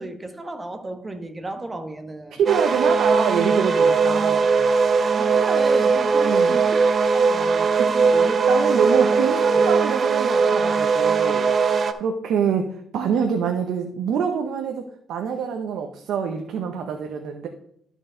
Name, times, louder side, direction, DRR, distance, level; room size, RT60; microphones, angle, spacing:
voice 1, 0.0-2.4 5.1-8.5 8.8-9.0, right 2 dB, 20° right, 1.2 m, -34 dB
voice 2, 2.4-4.6 6.2-6.6 7.4-7.9 8.2-11.5 11.9-14.8 15.1-17.5, right 7 dB, 75° right, 0.8 m, -26 dB
sound 1, 2.5-11.9, right 5 dB, 45° right, 0.6 m, -19 dB
13.0 x 4.6 x 3.8 m
cardioid pair, 90°, 0 cm